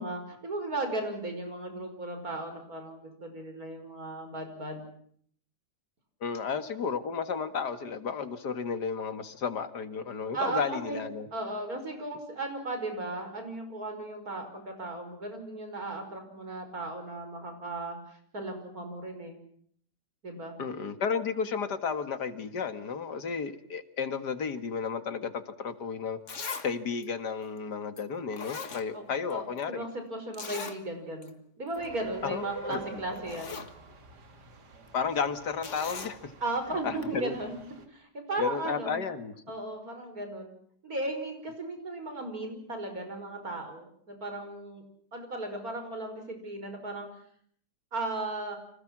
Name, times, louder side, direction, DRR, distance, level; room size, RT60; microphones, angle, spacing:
voice 1, 0.0-4.9 10.3-11.0 11.3-19.4 20.2-20.5 28.9-29.0 29.3-33.6 36.4-37.6 37.9-38.9 39.5-40.5 40.8-44.8 45.1-47.1 47.9-48.6, right 2 dB, 60° right, 6 dB, 5.8 m, -36 dB
voice 2, 6.2-11.3 20.6-26.2 26.6-29.8 32.2-32.8 34.9-36.3 36.8-37.4 38.4-39.3, left 6 dB, 90° left, 10 dB, 2.4 m, -33 dB
Zipper (clothing), 25.7-25.8 26.3-26.7 27.0-27.1 28.0-28.1 28.3-29.3 29.6-29.7 30.3-30.8 31.2-31.3 31.7-31.9 32.7-32.8 33.1-33.7 35.6-36.2 37.0-37.1, left 5 dB, 50° left, 2.0 m, -39 dB
sound 1, 31.7-37.9, right 4 dB, 85° right, 3.0 m, -47 dB
30.0 x 25.5 x 6.1 m, 0.64 s
omnidirectional pair, 1.7 m